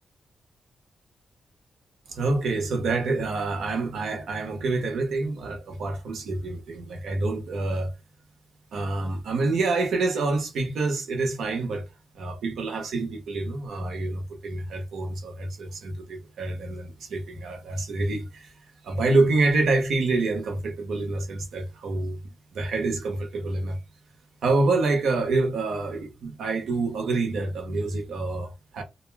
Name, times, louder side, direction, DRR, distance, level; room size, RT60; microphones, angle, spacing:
voice 1, 2.1-7.9 8.7-11.8 12.1-18.5 18.8-22.2 22.5-23.8 24.4-28.8, right 3 dB, 75° right, 0.8 m, -27 dB
2.5 x 2.1 x 3.3 m
wide cardioid pair, 170°, 0 cm